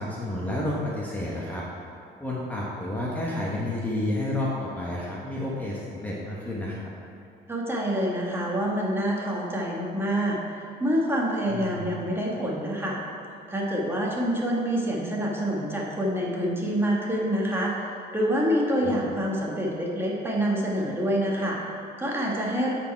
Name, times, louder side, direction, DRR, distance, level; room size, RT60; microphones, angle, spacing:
voice 1, 0.0-1.6 2.2-6.9 11.5-11.8 18.8-18.9, left 1 dB, 10° left, -6 dB, 1.1 m, -30 dB
voice 2, 7.5-13.0 13.5-22.7, equal, 15° right, -3 dB, 1.4 m, -27 dB
9.0 x 4.5 x 4.5 m, 2.7 s
cardioid pair, 110°, 17 cm